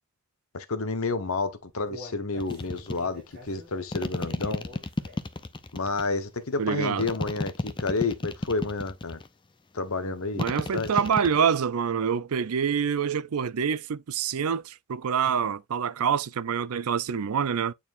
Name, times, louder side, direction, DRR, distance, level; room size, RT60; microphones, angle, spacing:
voice 1, 0.5-4.6 5.7-9.2 9.7-10.4 10.7-10.9, left 3 dB, 75° left, 1.0 m, -30 dB
Human voice, 1.4-5.4 5.8-5.9 6.4-6.5, left 1 dB, 45° right, 5.1 m, -47 dB
sound 1, 2.4-3.0 3.9-6.1 7.0-9.3 10.4-11.4, left 2 dB, 20° left, 0.5 m, -31 dB
voice 2, 6.6-7.1 10.3-17.7, right 7 dB, 85° right, 0.5 m, -26 dB
9.1 x 4.3 x 2.5 m
head